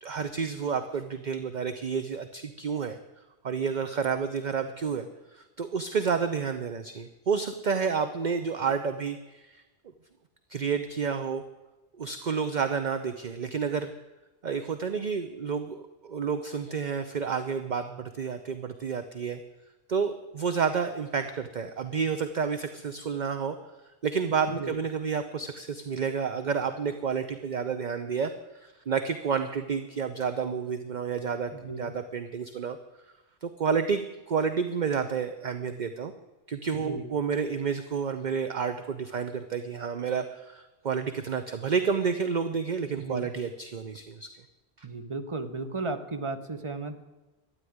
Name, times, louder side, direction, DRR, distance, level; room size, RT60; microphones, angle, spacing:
voice 1, 0.0-3.0 3.4-9.6 10.5-11.4 12.0-13.9 14.4-19.4 19.9-23.6 24.0-32.8 33.4-36.1 36.5-44.3 44.8-44.9, right 6 dB, 45° right, 9 dB, 0.8 m, -30 dB
voice 2, 31.5-31.9 36.7-37.1 43.0-43.3 44.8-47.0, right 3 dB, 30° right, 8 dB, 1.1 m, -35 dB
13.0 x 9.9 x 9.4 m, 1.1 s
omnidirectional pair, 1.1 m